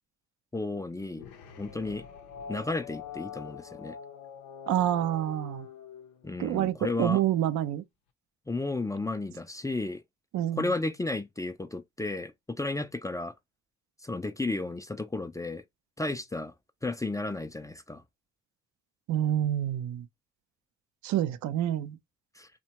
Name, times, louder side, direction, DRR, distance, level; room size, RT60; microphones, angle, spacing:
voice 1, 0.5-1.2 1.6-2.1 2.5-3.9 6.2-7.2 8.5-10.0 10.6-13.3 14.0-15.6 16.0-16.5 16.8-18.0 22.4-22.5, left 2 dB, 10° left, 0.4 m, -33 dB
sound 1, 1.1-6.7, left 8 dB, 90° left, 0.6 m, -45 dB
voice 2, 4.7-5.7 6.4-7.8 10.3-10.7 19.1-20.1 21.0-22.0, right 12 dB, 70° right, 0.5 m, -27 dB
2.8 x 2.2 x 2.9 m
supercardioid pair, 50°, 30 cm